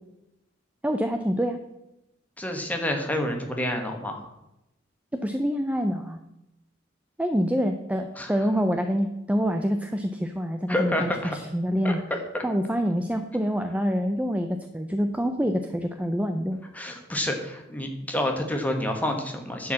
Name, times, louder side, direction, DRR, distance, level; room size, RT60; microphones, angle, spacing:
voice 1, 0.8-1.6 5.1-6.2 7.2-12.0 12.4-16.6, equal, 5° right, 6 dB, 0.5 m, -26 dB
voice 2, 2.4-4.3 8.2-8.3 10.7-11.4 11.8-12.4 16.7-19.7, left 1 dB, 10° left, 3 dB, 1.4 m, -28 dB
11.0 x 4.8 x 7.4 m, 0.89 s
head